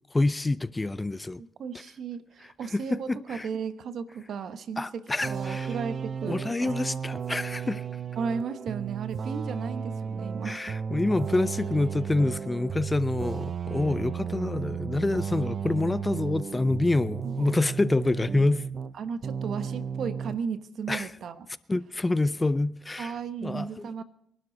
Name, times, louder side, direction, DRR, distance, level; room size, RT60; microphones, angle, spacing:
voice 1, 0.1-1.4 2.7-3.5 4.8-5.7 6.3-7.9 10.4-18.6 20.9-21.1 21.7-23.1 23.4-23.7, left 2 dB, 15° left, 0.5 m, -27 dB
voice 2, 1.4-6.7 8.2-10.6 17.2-17.6 18.9-21.5 23.0-24.0, right 6 dB, 65° right, 1.1 m, -35 dB
sound 1, 5.2-19.0 19.2-20.4, right 7 dB, 45° right, 0.6 m, -34 dB
24.5 x 12.0 x 4.0 m
cardioid pair, 90°, 0 cm